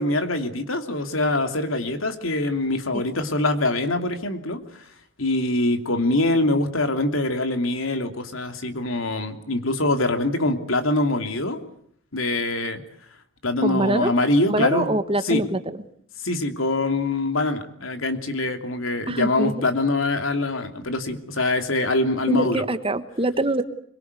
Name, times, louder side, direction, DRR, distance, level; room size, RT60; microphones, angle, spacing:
voice 1, 0.0-4.6 5.2-11.6 12.1-12.8 13.4-15.5 16.2-22.6, left 2 dB, 80° left, 7 dB, 3.0 m, -24 dB
voice 2, 13.6-14.1 14.5-15.8 19.1-19.6 22.3-23.6, right 1 dB, 25° right, 11 dB, 1.5 m, -24 dB
25.0 x 23.0 x 8.4 m, 0.63 s
head